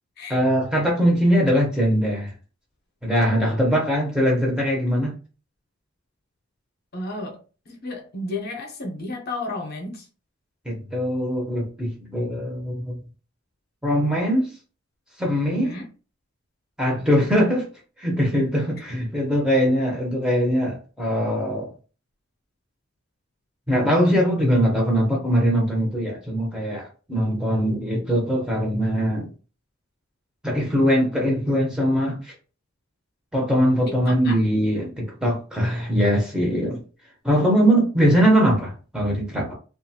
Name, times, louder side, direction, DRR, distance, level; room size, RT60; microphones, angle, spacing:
voice 1, 0.3-2.3 3.0-5.2 10.6-13.0 13.8-14.5 15.2-15.7 16.8-17.7 18.0-21.7 23.7-29.3 30.4-32.3 33.3-36.8 37.2-39.5, equal, 5° right, 0.7 m, -21 dB
voice 2, 6.9-7.4 7.7-10.1 15.6-15.8 33.9-34.4, left 2 dB, 50° left, 0.7 m, -32 dB
2.5 x 2.3 x 2.7 m
head